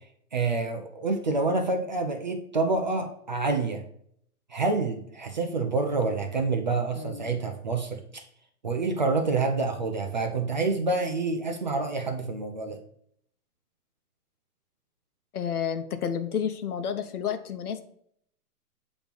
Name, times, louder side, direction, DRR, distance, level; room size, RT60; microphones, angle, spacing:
voice 1, 0.3-3.8 4.5-8.2 8.6-12.8, right 3 dB, 30° right, 4 dB, 0.4 m, -27 dB
voice 2, 7.0-7.3 15.3-17.8, left 8 dB, 70° left, 9 dB, 1.0 m, -30 dB
8.3 x 3.0 x 5.1 m, 0.68 s
hypercardioid pair, 160°, 46 cm